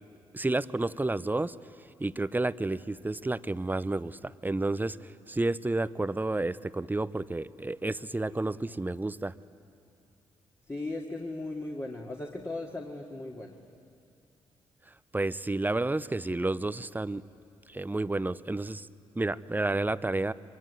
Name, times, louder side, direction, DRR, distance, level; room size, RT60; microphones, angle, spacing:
voice 1, 0.3-1.5 2.0-5.0 5.3-9.3 15.1-17.2 17.7-18.9 19.2-20.3, right 2 dB, 15° right, 16 dB, 0.7 m, -30 dB
voice 2, 10.7-13.6, left 2 dB, 25° left, -1 dB, 2.4 m, -37 dB
24.0 x 22.5 x 9.9 m, 2.4 s
hypercardioid pair, 45°, 12 cm